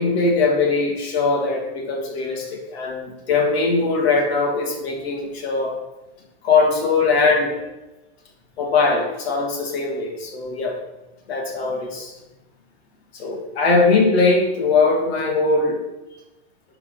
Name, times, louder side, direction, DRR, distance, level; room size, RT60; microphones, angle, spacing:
voice 1, 0.0-5.8 6.4-7.6 8.6-10.8 11.3-12.1 13.1-15.8, left 3 dB, 70° left, 1 dB, 2.9 m, -20 dB
12.0 x 4.9 x 6.0 m, 1.0 s
supercardioid pair, 175°, 32 cm